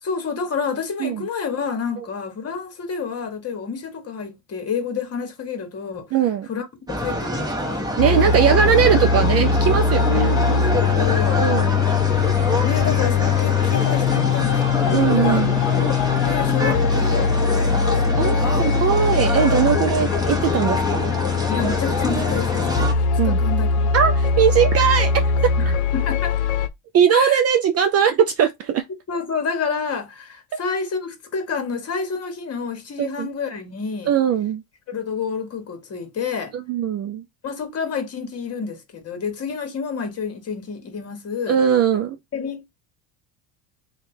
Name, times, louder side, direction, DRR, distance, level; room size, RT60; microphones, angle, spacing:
voice 1, 0.0-6.2 6.5-6.7 7.0-7.9 10.0-11.5 12.6-18.8 21.5-23.9 25.6-26.4 27.1-27.4 29.1-34.2 34.9-36.5 37.4-41.6 42.3-42.7, left 5 dB, 35° left, 1.3 m, -29 dB
voice 2, 6.1-6.5 8.0-10.3 11.4-11.8 14.9-15.6 18.2-21.1 23.2-23.4 23.9-25.1 26.9-28.8 33.0-33.3 34.1-34.6 36.5-37.2 41.5-42.2, right 8 dB, 35° right, 0.4 m, -20 dB
sound 1, 6.9-22.9, equal, 10° right, 1.1 m, -25 dB
sound 2, 8.0-26.7, left 6 dB, 85° left, 0.8 m, -21 dB
3.3 x 2.4 x 4.2 m
supercardioid pair, 105°, 45 cm